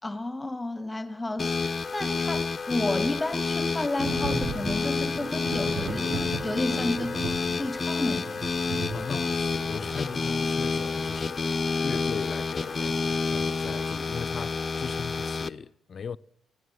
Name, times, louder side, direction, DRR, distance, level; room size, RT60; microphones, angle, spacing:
voice 1, 0.0-1.6 1.9-6.1 6.4-7.2 7.5-8.4, left 2 dB, 10° left, 2.5 m, -31 dB
sound 1, 1.4-15.5, left 4 dB, 30° left, 1.2 m, -29 dB
Thunder / Rain, 4.0-13.8, right 3 dB, 65° right, 3.1 m, -38 dB
voice 2, 8.9-11.5 11.8-16.2, left 6 dB, 50° left, 1.0 m, -38 dB
24.5 x 17.0 x 9.6 m
cardioid pair, 90°, 0 cm